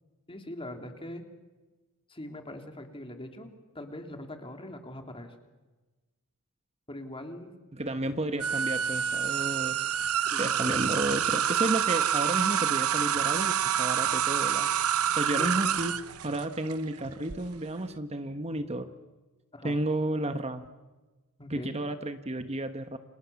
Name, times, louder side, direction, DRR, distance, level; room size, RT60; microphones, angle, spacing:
voice 1, 0.3-1.2 2.1-5.3 6.9-7.5 10.2-10.8 15.4-15.5 19.5-19.8 21.4-21.8, left 1 dB, 25° left, 5 dB, 3.1 m, -42 dB
voice 2, 7.7-9.8 10.4-14.7 15.1-18.9 19.6-20.7 21.5-23.0, right 1 dB, 30° right, 9 dB, 1.2 m, -32 dB
sound 1, 8.4-17.4, right 9 dB, 80° right, 1.0 m, -27 dB
30.0 x 26.0 x 7.1 m, 1.2 s
head